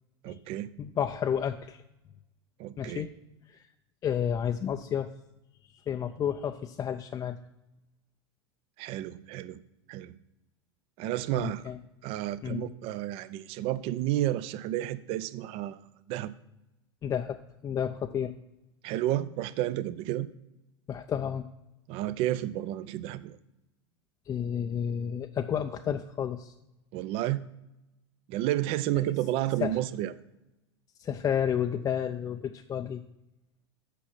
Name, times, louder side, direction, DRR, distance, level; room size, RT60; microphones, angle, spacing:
voice 1, 0.2-0.7 2.6-3.0 8.8-9.6 9.9-10.1 11.0-11.6 12.0-15.8 16.1-16.3 18.8-20.3 21.9-23.4 26.9-27.4 28.3-30.1, right 14 dB, 45° right, 16 dB, 0.5 m, -31 dB
voice 2, 0.8-1.8 2.8-3.1 3.5-3.6 4.0-5.1 5.9-7.4 11.3-11.8 12.4-12.7 17.0-18.3 20.9-21.5 24.3-26.5 28.9-29.1 29.6-29.8 31.0-33.0, left 8 dB, 25° left, 6 dB, 0.4 m, -31 dB
8.3 x 5.7 x 5.8 m, 0.92 s
figure-of-eight pair, 80°, 14 cm